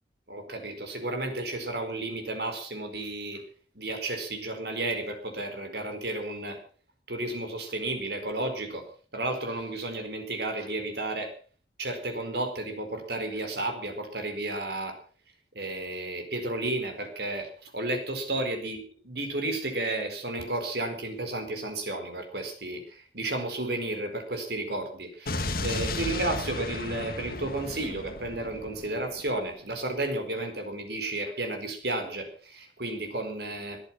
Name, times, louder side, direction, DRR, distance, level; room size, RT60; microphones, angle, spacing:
voice 1, 0.3-3.4 3.7-6.6 7.1-8.8 9.1-11.3 11.8-15.0 15.5-18.8 19.0-33.8, right 2 dB, 65° right, 6 dB, 4.6 m, -32 dB
Explosion, 25.3-29.3, left 2 dB, 55° left, 2.1 m, -34 dB
21.5 x 11.0 x 5.9 m, 0.43 s
head